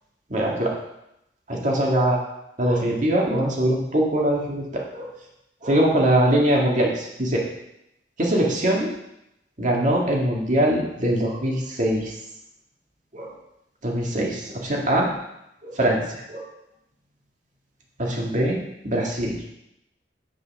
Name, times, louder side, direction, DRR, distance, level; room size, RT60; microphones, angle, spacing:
voice 1, 0.3-0.7 1.5-2.2 2.6-5.1 5.6-7.4 8.2-8.9 9.6-12.1 13.1-13.3 13.8-15.1 15.6-16.5 18.0-19.3, right 1 dB, 45° right, -2 dB, 1.9 m, -22 dB
7.8 x 5.6 x 5.9 m, 0.84 s
head